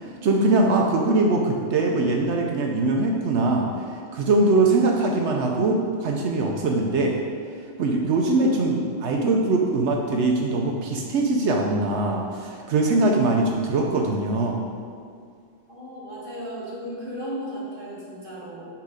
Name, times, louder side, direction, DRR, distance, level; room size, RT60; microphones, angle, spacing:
voice 1, 0.0-7.2 7.8-14.6, right 2 dB, 70° right, 1 dB, 0.9 m, -22 dB
voice 2, 15.7-18.7, equal, 45° right, -7 dB, 1.7 m, -35 dB
5.7 x 3.8 x 4.9 m, 2.2 s
omnidirectional pair, 1.3 m